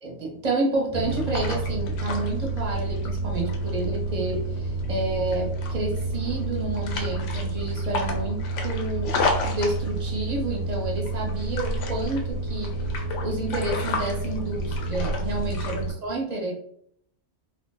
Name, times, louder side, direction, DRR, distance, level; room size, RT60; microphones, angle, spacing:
voice 1, 0.0-9.2 9.4-12.7 13.2-16.5, right 2 dB, 40° right, -1 dB, 0.8 m, -30 dB
sound 1, 0.9-15.9, right 1 dB, 85° left, 0.9 m, -28 dB
2.8 x 2.1 x 3.3 m, 0.66 s
omnidirectional pair, 1.2 m